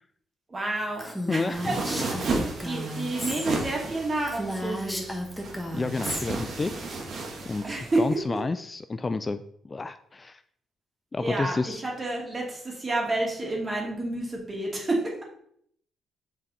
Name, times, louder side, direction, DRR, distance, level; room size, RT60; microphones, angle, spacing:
voice 1, 0.5-5.2 7.6-8.0 8.3-8.4 11.2-15.2, right 2 dB, 30° right, -1 dB, 2.6 m, -30 dB
Female speech woman speaking, 1.0-3.5 3.8-3.9 4.2-6.3, equal, ahead, 1.5 m, -34 dB
voice 2, 1.3-1.6 5.7-6.9 7.5-10.4 11.1-11.8, left 3 dB, 25° left, 11 dB, 0.4 m, -30 dB
sound 1, 1.5-8.2, right 3 dB, 60° right, 1.8 m, -34 dB
7.4 x 5.3 x 4.3 m, 0.66 s
cardioid pair, 90°, 0 cm